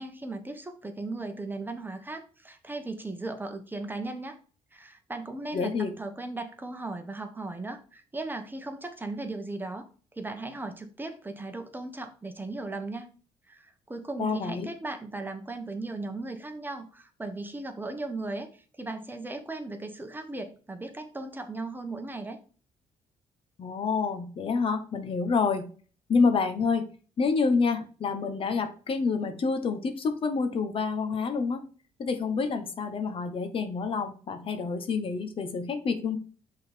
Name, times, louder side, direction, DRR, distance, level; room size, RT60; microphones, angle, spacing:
voice 1, 0.0-4.4 4.7-9.9 10.2-13.1 13.5-22.4, right 2 dB, 15° right, 6 dB, 1.2 m, -37 dB
voice 2, 5.5-5.9 14.2-14.7 23.6-25.7 26.1-26.8 27.2-31.6 32.0-36.2, left 4 dB, 50° left, 8 dB, 1.1 m, -28 dB
5.6 x 4.0 x 5.2 m, 0.39 s
supercardioid pair, 75°, 12 cm